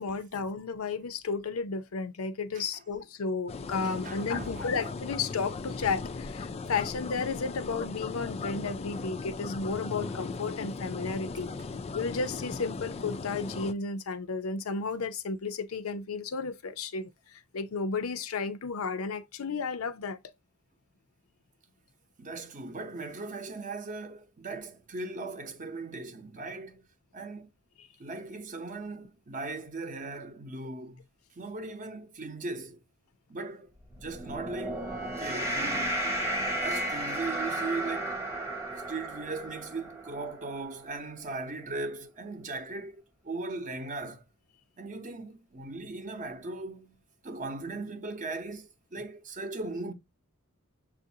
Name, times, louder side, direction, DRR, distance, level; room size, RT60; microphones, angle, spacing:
voice 1, 0.0-11.5 11.9-17.1 17.5-20.2, left 4 dB, 80° left, 0.6 m, -33 dB
sound 1, 3.5-13.7, left 4 dB, 30° left, 0.3 m, -38 dB
voice 2, 3.8-4.9 22.2-26.8 27.1-27.5 28.0-31.0 31.4-32.8 33.3-33.7 34.0-36.0 36.6-38.2 38.9-44.2 44.8-47.0 47.2-49.9, right 3 dB, 40° right, 0.7 m, -38 dB
sound 2, 33.9-40.5, right 1 dB, 15° right, 1.0 m, -33 dB
6.8 x 2.6 x 2.7 m
head